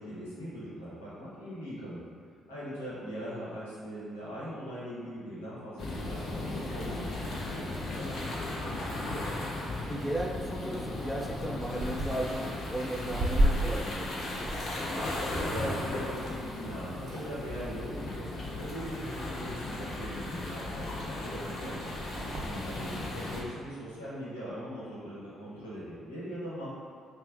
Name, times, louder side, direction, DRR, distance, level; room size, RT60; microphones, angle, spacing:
voice 1, 0.0-2.0 2.5-7.6 7.9-8.5 15.3-26.7, equal, 85° left, -10 dB, 1.0 m, -40 dB
sound 1, 5.8-23.4, left 2 dB, 55° left, 0.6 m, -36 dB
sound 2, 9.8-16.7 17.0-17.7 18.6-19.0 19.5-19.6 19.8-23.0, equal, 60° right, 0.5 m, -35 dB
voice 2, 9.9-14.6, right 1 dB, 5° left, 0 dB, 0.4 m, -35 dB
5.5 x 2.1 x 2.4 m, 2.2 s
figure-of-eight pair, 45°, 0 cm